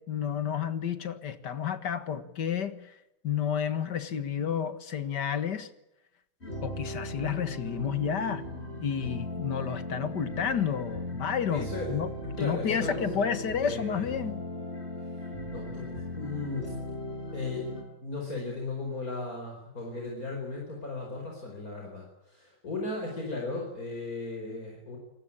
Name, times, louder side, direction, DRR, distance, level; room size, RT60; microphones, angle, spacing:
voice 1, 0.0-3.0 3.2-5.7 6.6-8.4 8.8-12.1 12.4-14.4, left 8 dB, 75° left, 2.2 m, -31 dB
sound 1, 6.4-17.8, left 1 dB, 35° left, 6.8 m, -38 dB
voice 2, 11.5-12.0 12.4-14.1 15.0-16.8 17.3-17.7 18.0-25.0, left 2 dB, 55° left, 5.4 m, -36 dB
28.0 x 20.0 x 8.8 m
omnidirectional pair, 1.9 m